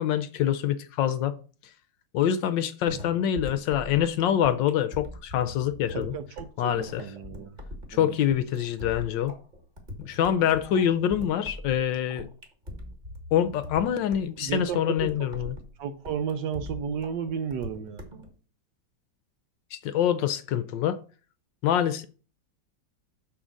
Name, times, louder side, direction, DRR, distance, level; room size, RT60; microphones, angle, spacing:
voice 1, 0.0-1.4 2.1-6.1 6.6-7.0 7.9-9.3 10.0-12.3 13.3-15.6 19.7-21.0 21.6-22.0, left 10 dB, 75° left, 1.2 m, -25 dB
sound 1, 2.9-18.3, left 1 dB, 25° right, 1.5 m, -42 dB
voice 2, 5.9-7.6 7.9-8.1 14.4-15.3 15.8-18.0, right 7 dB, 70° right, 1.1 m, -33 dB
6.9 x 3.8 x 6.2 m
omnidirectional pair, 2.2 m